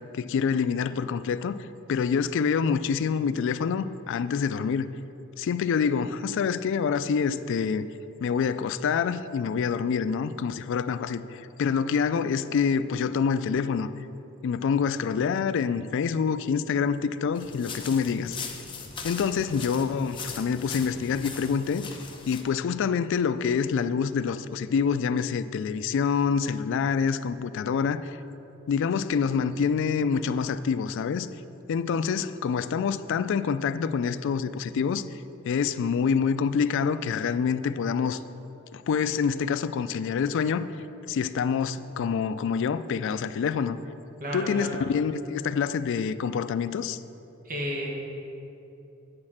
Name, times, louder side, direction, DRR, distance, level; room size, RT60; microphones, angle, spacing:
voice 1, 0.1-1.6 1.9-4.9 5.4-7.9 8.2-13.9 14.4-18.6 19.0-22.0 22.3-28.2 28.7-31.3 31.7-35.0 35.4-38.2 38.7-40.7 41.1-43.8 44.3-47.0, left 6 dB, 60° left, 13 dB, 0.3 m, -26 dB
sound 1, 17.4-22.4, left 5 dB, 25° left, 0.7 m, -40 dB
voice 2, 44.2-44.8 47.4-47.9, equal, 40° right, -3 dB, 1.3 m, -32 dB
8.6 x 4.3 x 7.3 m, 2.9 s
head